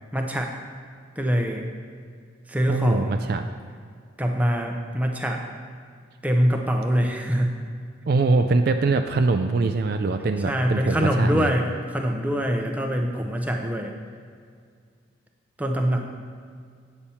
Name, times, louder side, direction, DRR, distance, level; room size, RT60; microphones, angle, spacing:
voice 1, 0.1-0.6 1.2-1.6 2.5-3.2 4.2-5.4 6.2-7.6 10.5-13.9 15.6-16.0, equal, 5° right, 2 dB, 0.6 m, -24 dB
voice 2, 2.7-3.5 8.1-11.5, right 3 dB, 50° right, 7 dB, 0.3 m, -23 dB
8.8 x 6.9 x 4.3 m, 2.1 s
head